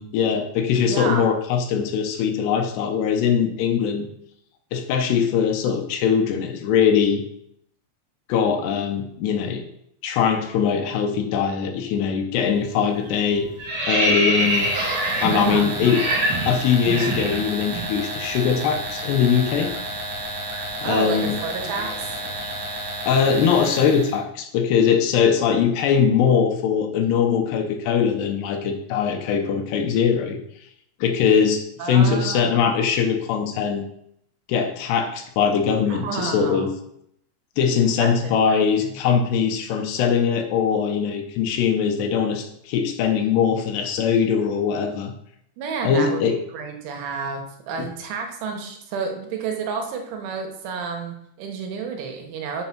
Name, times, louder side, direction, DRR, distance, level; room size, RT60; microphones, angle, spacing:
voice 1, 0.0-4.1 4.7-7.2 8.3-9.6 10.0-13.5 13.9-14.7 15.2-16.0 16.5-19.7 20.8-21.4 23.1-30.4 31.0-33.8 34.5-36.7 37.6-45.1 45.8-46.4 47.8-47.9, left 7 dB, 75° left, 4 dB, 2.8 m, -21 dB
voice 2, 0.9-1.3 15.3-15.7 20.8-22.1 31.8-32.7 35.9-36.7 38.0-38.9 45.6-46.2 46.5-52.6, right 5 dB, 85° right, 3 dB, 3.7 m, -30 dB
sound 1, 12.3-12.6 12.9-17.9 18.2-18.4 18.7-22.7, right 1 dB, 55° right, 1.2 m, -26 dB
sound 2, 14.3-24.2, right 1 dB, 70° right, 1.5 m, -32 dB
7.5 x 6.7 x 5.9 m, 0.74 s
omnidirectional pair, 5.3 m